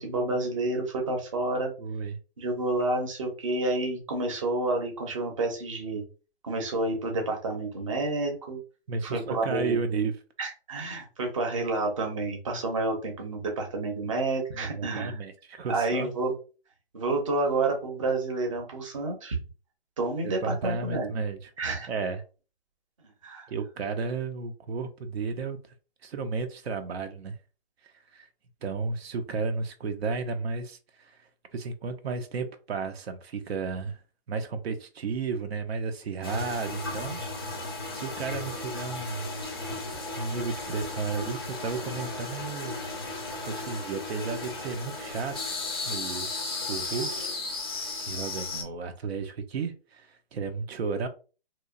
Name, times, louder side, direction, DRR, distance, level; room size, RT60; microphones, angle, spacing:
voice 1, 0.0-1.7 2.4-6.0 6.4-8.6 9.0-9.8 10.4-15.2 15.7-16.3 16.9-19.4 20.0-21.1 21.6-21.9 23.2-23.5, right 2 dB, 30° right, 0.6 m, -29 dB
voice 2, 1.8-2.2 8.9-10.2 14.5-16.1 20.2-21.5 21.9-22.2 23.5-25.6 26.0-27.4 27.8-28.3 28.6-31.1 31.5-34.0 34.3-37.2 37.9-39.3 40.2-42.8 43.1-45.6 45.9-46.3 46.7-47.3 48.0-51.1, right 4 dB, 80° right, 0.5 m, -33 dB
sound 1, 36.2-48.6, left 2 dB, 25° left, 0.4 m, -35 dB
2.8 x 2.0 x 2.4 m
hypercardioid pair, 170°, 30 cm